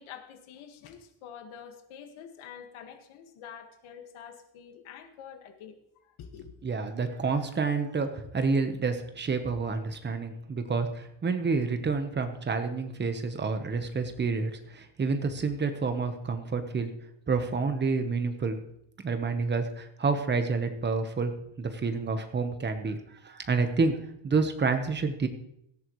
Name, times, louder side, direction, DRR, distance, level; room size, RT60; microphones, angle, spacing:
voice 1, 0.0-6.5, left 8 dB, 85° left, 5 dB, 1.9 m, -47 dB
voice 2, 6.6-16.9 17.3-18.6 19.0-21.3 21.6-23.0 23.2-24.0 24.2-25.3, right 4 dB, 20° right, 7 dB, 1.1 m, -29 dB
17.5 x 13.5 x 3.2 m, 0.78 s
cardioid pair, 170°, 47 cm